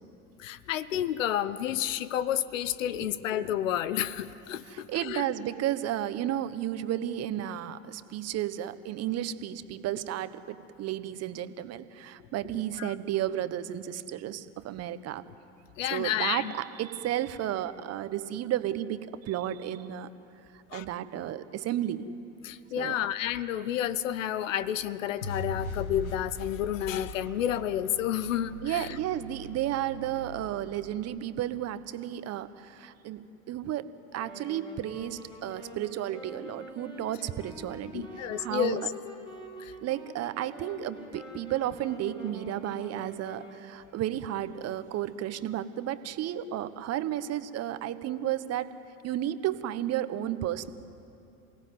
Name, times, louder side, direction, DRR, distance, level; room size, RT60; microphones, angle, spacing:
voice 1, 0.4-5.2 12.8-12.9 15.8-16.5 20.7-20.9 22.4-28.9 37.9-38.8 39.6-39.7, left 11 dB, 65° left, 16 dB, 1.0 m, -30 dB
voice 2, 4.7-15.2 15.9-20.1 20.5-22.1 22.8-23.0 28.6-33.9 34.1-38.8 39.8-48.7 49.0-50.7, right 12 dB, 40° right, 13 dB, 1.3 m, -33 dB
sound 1, 25.2-31.4, left 2 dB, 90° left, 1.6 m, -40 dB
Wind instrument woodwind instrument, 34.2-43.7, equal, 10° left, 5.9 m, -46 dB
28.0 x 18.0 x 9.4 m, 2.7 s
figure-of-eight pair, 80°, 41 cm